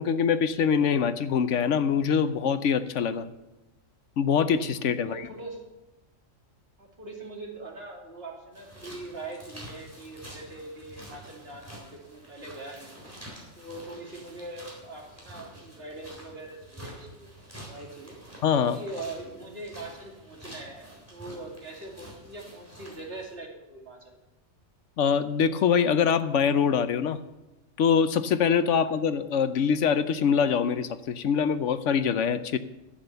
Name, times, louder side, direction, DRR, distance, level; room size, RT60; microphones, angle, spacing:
voice 1, 0.0-3.3 4.2-5.2 18.4-18.8 25.0-27.2 27.8-32.6, left 7 dB, 70° left, 12 dB, 1.0 m, -24 dB
voice 2, 5.0-5.6 6.8-12.9 13.6-18.2 18.6-24.2 28.7-28.9, right 2 dB, 50° right, -2 dB, 3.0 m, -42 dB
sound 1, 8.5-23.4, right 1 dB, 10° right, 3.7 m, -48 dB
11.5 x 8.9 x 6.8 m, 1.0 s
omnidirectional pair, 1.4 m